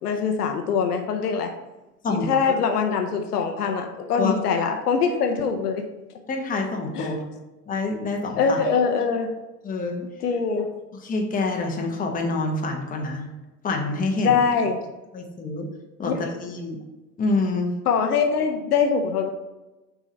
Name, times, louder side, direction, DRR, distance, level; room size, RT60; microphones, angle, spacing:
voice 1, 0.0-1.5 2.1-5.9 6.9-7.1 8.4-9.3 10.2-10.7 14.2-14.8 16.1-16.2 17.9-19.3, left 6 dB, 70° left, 5 dB, 0.8 m, -23 dB
voice 2, 2.0-2.5 4.2-4.4 6.3-7.4 7.7-8.6 9.6-10.0 11.0-13.3 13.6-14.4 15.1-15.7 16.0-16.8 17.2-17.7, left 3 dB, 15° left, 2 dB, 1.0 m, -27 dB
6.2 x 3.7 x 5.2 m, 1.1 s
figure-of-eight pair, 80°, 48 cm